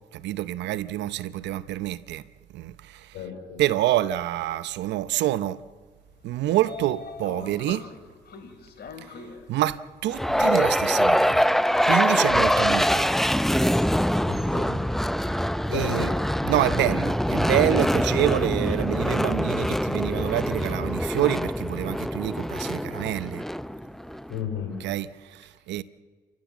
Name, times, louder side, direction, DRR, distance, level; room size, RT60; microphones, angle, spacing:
voice 1, 0.1-2.2 2.5-3.2 3.6-5.6 6.2-7.9 9.5-11.5 11.8-13.1 15.2-15.3 15.7-16.1 16.4-23.4 24.8-25.8, right 14 dB, 85° right, 0.8 m, -27 dB
voice 2, 3.1-3.6 14.2-14.8 15.7-16.1 24.3-24.7, left 7 dB, 85° left, 5.1 m, -33 dB
Train / Sliding door, 6.1-16.2, left 5 dB, 65° left, 3.0 m, -45 dB
sound 1, 10.1-24.3, equal, ahead, 0.6 m, -24 dB
29.5 x 14.5 x 7.3 m
supercardioid pair, 55°, 18 cm